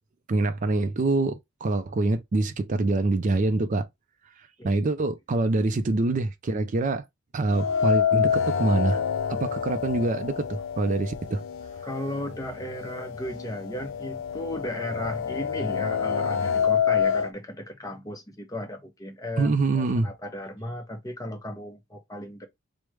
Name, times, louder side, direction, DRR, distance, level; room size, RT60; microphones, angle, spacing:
voice 1, 0.3-3.9 4.4-7.0 7.3-9.0 9.3-11.4 19.4-20.1, right 2 dB, 40° right, 0.4 m, -25 dB
sound 1, 7.5-11.6 11.9-12.0 13.0-13.1 13.5-17.3, left 7 dB, 65° left, 0.4 m, -26 dB
voice 2, 11.8-22.5, left 1 dB, 15° left, 0.6 m, -35 dB
4.7 x 2.1 x 3.1 m
head